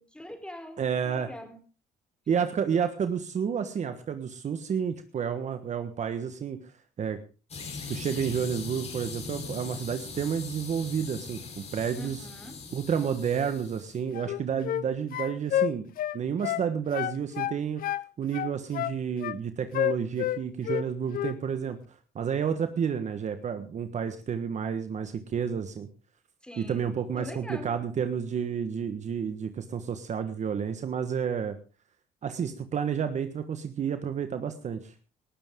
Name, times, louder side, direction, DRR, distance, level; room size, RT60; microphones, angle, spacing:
voice 1, 0.0-1.6 12.0-12.5 26.4-26.9 27.2-27.7, left 1 dB, 5° left, 7 dB, 3.8 m, -43 dB
voice 2, 0.8-1.3 2.3-6.6 7.0-7.2 7.9-12.2 12.7-17.8 18.2-21.8 22.1-25.9 26.6-31.6 32.2-34.9, right 7 dB, 45° right, 9 dB, 1.4 m, -30 dB
sound 1, 7.5-14.0, left 4 dB, 40° left, 4.6 m, -41 dB
sound 2, 14.1-14.9 15.1-16.7 16.9-18.1 18.3-19.4 19.7-20.9 21.1-21.4, left 12 dB, 60° left, 0.7 m, -29 dB
19.0 x 13.5 x 3.7 m, 0.34 s
cardioid pair, 110°, 17 cm